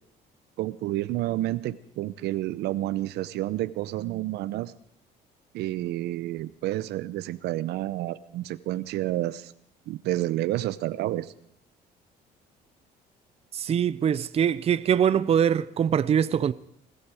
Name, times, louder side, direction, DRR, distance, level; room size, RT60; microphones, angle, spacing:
voice 1, 0.6-4.7 5.5-9.5 9.9-11.3, right 15 dB, 80° right, 0.7 m, -30 dB
voice 2, 13.5-16.5, right 8 dB, 35° right, 0.6 m, -23 dB
21.0 x 14.0 x 4.9 m
cardioid pair, 110°, 17 cm